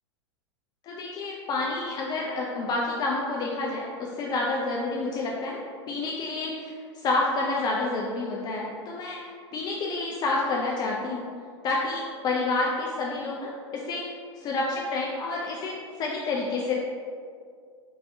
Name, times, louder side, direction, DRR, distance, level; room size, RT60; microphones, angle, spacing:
voice 1, 0.8-5.6 5.9-11.2 11.6-14.0 14.4-16.7, left 3 dB, 25° left, -3 dB, 0.4 m, -29 dB
4.4 x 3.2 x 2.6 m, 2.1 s
figure-of-eight pair, 90°, 15 cm